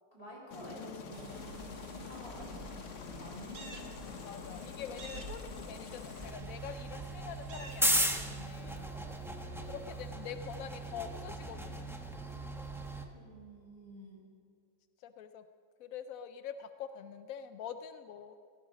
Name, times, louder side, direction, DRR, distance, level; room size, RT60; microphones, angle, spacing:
voice 1, 0.1-4.1 5.9-6.1 13.1-14.2, equal, 30° left, -3 dB, 5.2 m, -50 dB
Aircraft, 0.5-6.3, left 6 dB, 50° left, 1.1 m, -46 dB
sound 1, 1.1-8.4, right 2 dB, 70° right, 2.1 m, -49 dB
voice 2, 4.2-8.9 9.6-12.0 15.0-15.4 15.8-18.4, left 8 dB, 70° left, 10 dB, 0.8 m, -45 dB
sound 2, 6.2-13.0, right 1 dB, ahead, 0.7 m, -36 dB
17.0 x 16.5 x 5.1 m, 2.3 s
omnidirectional pair, 2.0 m